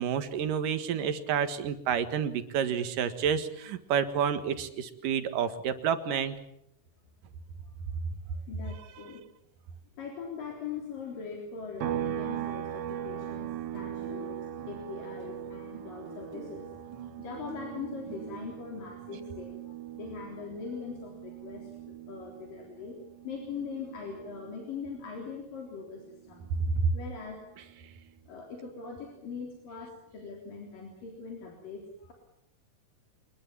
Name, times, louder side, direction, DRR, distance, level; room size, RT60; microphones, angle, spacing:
voice 1, 0.0-6.4 26.8-26.9, right 7 dB, 80° right, 9 dB, 3.3 m, -29 dB
voice 2, 8.5-9.3 10.0-16.7 17.2-23.0 23.2-26.5 26.9-27.4 28.3-32.1, left 5 dB, 85° left, 0 dB, 5.3 m, -41 dB
sound 1, 11.8-25.3 25.7-27.9, right 10 dB, 60° right, 1.8 m, -40 dB
sound 2, 12.9-13.5 13.7-18.5, right 2 dB, 45° right, 2.3 m, -48 dB
25.0 x 21.0 x 7.4 m, 0.78 s
omnidirectional pair, 3.8 m